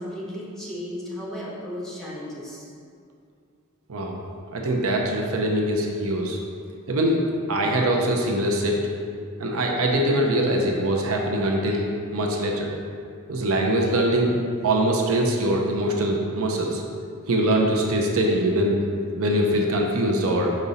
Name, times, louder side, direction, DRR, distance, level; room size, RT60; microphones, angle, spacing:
voice 1, 0.0-2.7, equal, ahead, -7 dB, 1.3 m, -34 dB
voice 2, 3.9-4.2 4.5-6.4 6.9-7.2 7.5-8.9 9.4-12.7 13.3-16.8 17.3-18.8 19.2-20.5, right 1 dB, 70° right, 0 dB, 0.7 m, -23 dB
6.0 x 5.3 x 4.1 m, 2.3 s
head